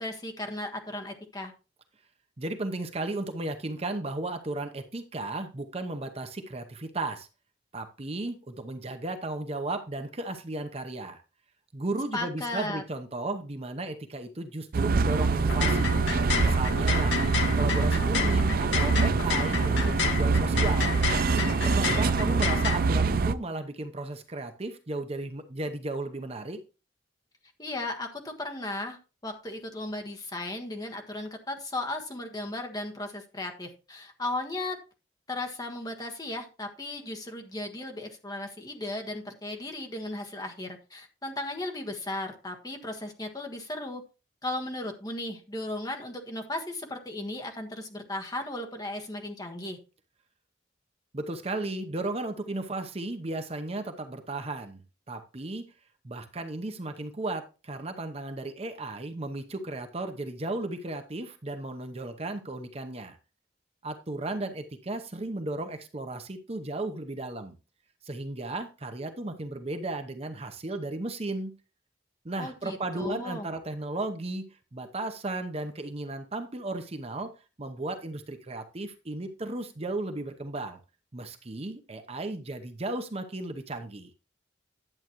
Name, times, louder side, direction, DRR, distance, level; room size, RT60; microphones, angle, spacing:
voice 1, 0.0-1.5 12.1-12.8 27.6-34.8 35.3-44.0 44.4-49.8 72.4-73.5, left 2 dB, 20° left, 4 dB, 1.4 m, -36 dB
voice 2, 2.4-7.3 7.7-11.2 11.7-16.0 16.4-17.2 17.6-20.9 21.6-26.6 51.1-55.7 56.0-63.2 63.8-67.6 68.0-71.5 72.2-77.3 77.6-80.8 81.1-84.1, right 2 dB, 35° right, 7 dB, 0.8 m, -35 dB
sound 1, 14.7-23.3, right 4 dB, 55° right, 0.4 m, -25 dB
sound 2, 15.4-22.8, left 5 dB, 85° left, 1.2 m, -31 dB
11.0 x 8.0 x 3.0 m, 0.31 s
head